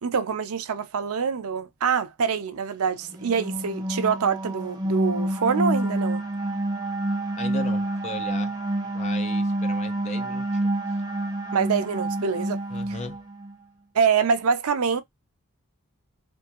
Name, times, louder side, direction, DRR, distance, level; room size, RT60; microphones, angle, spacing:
voice 1, 0.0-6.2 11.5-12.6 12.9-13.0 13.9-15.0, right 6 dB, 85° right, 0.5 m, -25 dB
sound 1, 3.0-13.5, right 1 dB, 20° right, 0.8 m, -28 dB
voice 2, 7.4-8.5 8.9-11.0 12.7-13.2, left 2 dB, 30° left, 0.5 m, -37 dB
3.5 x 2.5 x 2.8 m
head